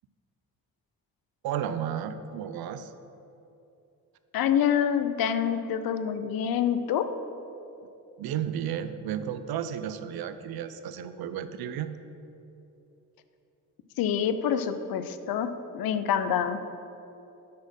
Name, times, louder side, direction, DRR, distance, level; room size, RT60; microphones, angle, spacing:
voice 1, 1.4-2.9 8.2-12.0, right 9 dB, 80° right, 11 dB, 0.6 m, -33 dB
voice 2, 4.3-7.1 14.0-16.6, left 8 dB, 75° left, 10 dB, 0.6 m, -26 dB
8.3 x 4.3 x 6.4 m, 2.8 s
cardioid pair, 70°, 36 cm